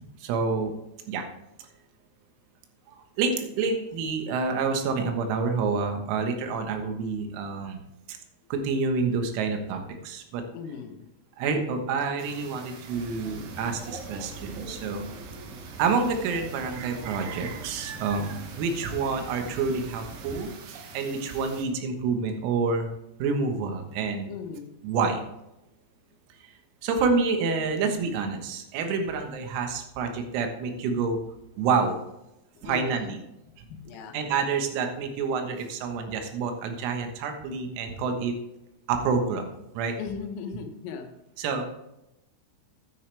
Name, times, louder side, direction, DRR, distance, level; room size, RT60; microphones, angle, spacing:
voice 1, 0.2-0.7 1.1-1.2 2.9-7.8 8.1-8.2 8.5-10.4 11.4-15.1 15.8-22.9 23.2-24.3 24.8-25.2 26.8-31.2 31.6-32.0 32.6-33.2 34.1-38.3 38.9-39.5 39.8-40.0 41.4-41.6, right 4 dB, 90° right, 5 dB, 4.1 m, -28 dB
voice 2, 10.5-11.1 17.9-18.4 24.3-24.8 32.6-34.4 40.0-41.1, left 6 dB, 80° left, 4 dB, 3.7 m, -39 dB
sound 1, 12.2-21.7, right 5 dB, 65° right, 2.8 m, -46 dB
sound 2, 12.9-20.4, right 2 dB, 45° right, 4.1 m, -43 dB
12.5 x 10.5 x 3.4 m, 0.88 s
omnidirectional pair, 6.0 m